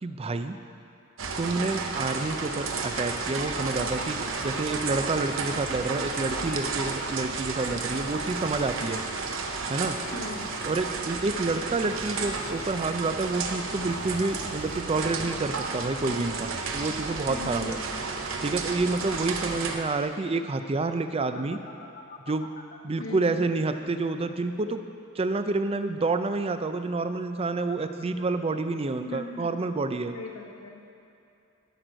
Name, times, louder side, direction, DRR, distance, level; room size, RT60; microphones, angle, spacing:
voice 1, 0.0-0.6 1.4-9.0 9.7-10.0 10.7-17.8 18.4-21.6 22.3-22.5 22.8-24.8 25.2-30.1, right 3 dB, 30° right, 9 dB, 0.4 m, -28 dB
sound 1, 1.2-19.8, right 4 dB, 70° right, 0.8 m, -32 dB
Alarm, 3.8-15.7 21.2-22.8, left 3 dB, 45° left, 0.8 m, -48 dB
voice 2, 10.1-10.5 17.3-17.9 23.0-23.5 29.1-29.6 30.1-30.8, left 2 dB, 80° left, 1 dB, 1.2 m, -38 dB
13.0 x 6.2 x 5.2 m, 2.6 s
head